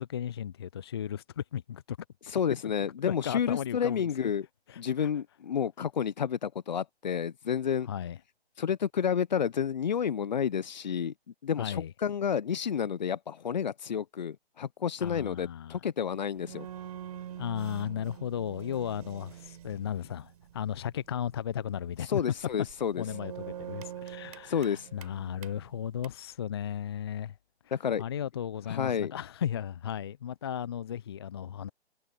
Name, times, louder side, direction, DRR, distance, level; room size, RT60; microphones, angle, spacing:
voice 1, 0.0-2.0 2.6-2.7 3.1-4.3 4.7-5.1 7.9-8.2 11.6-11.9 15.0-15.8 17.4-22.2 23.0-27.4 28.0-31.7, left 9 dB, 25° left, 0.6 m, -35 dB
voice 2, 2.3-4.5 4.8-7.9 8.6-11.1 11.4-16.7 22.1-23.0 24.5-24.9 27.7-28.0 28.7-29.1, left 8 dB, 45° left, 1.0 m, -30 dB
sound 1, 16.1-26.1, right 10 dB, 35° right, 4.1 m, -45 dB
figure-of-eight pair, 140°, 32 cm